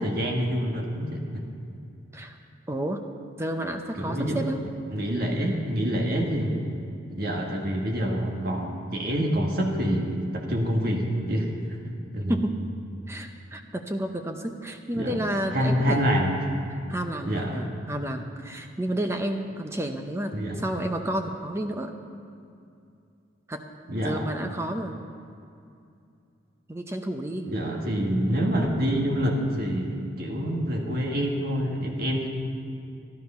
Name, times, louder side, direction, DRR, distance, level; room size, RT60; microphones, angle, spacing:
voice 1, 0.0-1.4 4.0-4.4 4.9-6.7 7.1-11.5 11.8-12.3 14.9-15.2 15.5-16.3 17.2-17.7 20.3-20.7 23.9-24.4 27.5-32.3, equal, 50° right, 0 dB, 1.8 m, -27 dB
voice 2, 2.7-3.0 3.4-4.6 12.3-12.6 13.1-16.2 16.9-21.9 23.5-23.6 24.0-25.0 26.7-27.5, right 1 dB, 15° right, 5 dB, 0.6 m, -31 dB
13.0 x 12.5 x 5.6 m, 2.5 s
head